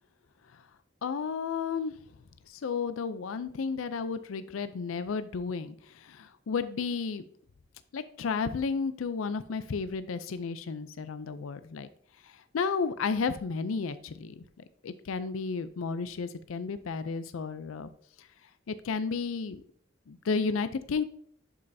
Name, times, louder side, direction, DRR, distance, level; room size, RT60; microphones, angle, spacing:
voice 1, 1.0-1.9 2.5-7.2 7.9-11.9 12.2-14.4 14.8-17.9 18.2-18.3 18.7-19.6 20.1-21.0, left 5 dB, 90° left, 12 dB, 0.4 m, -32 dB
11.0 x 5.4 x 2.7 m, 0.62 s
head